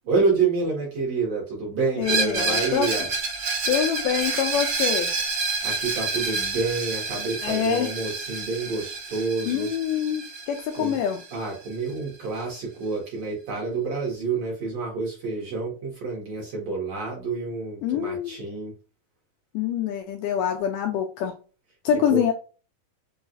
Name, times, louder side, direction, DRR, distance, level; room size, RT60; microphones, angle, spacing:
voice 1, 0.0-3.1 5.6-9.7 10.7-11.0 11.3-18.7 21.9-22.2, right 4 dB, 65° right, -3 dB, 1.8 m, -28 dB
voice 2, 2.0-2.9 3.7-5.1 7.4-7.9 9.5-11.2 17.8-18.4 19.5-21.3 21.9-22.3, left 9 dB, 80° left, 3 dB, 2.0 m, -25 dB
Screech, 2.0-11.7, right 4 dB, 85° right, 1.2 m, -29 dB
5.6 x 2.3 x 2.5 m, 0.35 s
omnidirectional pair, 4.2 m